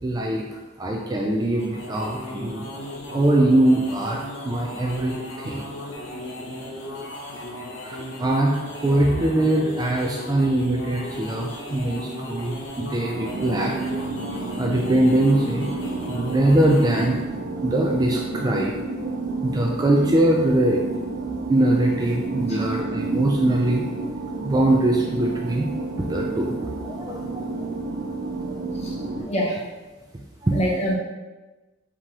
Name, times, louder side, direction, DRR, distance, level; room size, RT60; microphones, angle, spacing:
voice 1, 0.0-2.6 3.1-5.6 6.1-6.3 6.8-7.0 7.8-13.7 14.6-15.7 16.1-17.2 17.6-18.7 19.0-19.1 19.4-20.8 21.5-24.1 24.4-25.7 26.0-27.7 28.2-28.6 28.9-29.3 30.4-30.6, right 1 dB, 20° right, -1 dB, 0.3 m, -22 dB
sound 1, 1.4-17.2, left 1 dB, 60° left, 0.7 m, -36 dB
sound 2, 13.1-29.2, right 3 dB, 65° right, 0.6 m, -30 dB
voice 2, 29.3-29.7 30.5-31.0, equal, 30° left, -2 dB, 0.8 m, -25 dB
4.7 x 3.7 x 2.8 m, 1.2 s
head